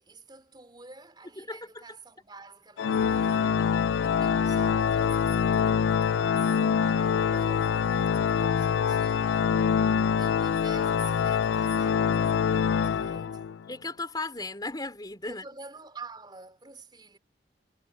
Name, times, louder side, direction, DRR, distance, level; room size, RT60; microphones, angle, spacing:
voice 1, 0.0-3.8 4.2-9.7 10.1-13.6 15.3-17.2, right 3 dB, 25° right, 3.6 m, -48 dB
voice 2, 1.4-1.8 4.0-4.1 13.7-15.4, left 2 dB, 20° left, 3.6 m, -36 dB
Organ, 2.8-13.6, left 7 dB, 80° left, 0.3 m, -25 dB
head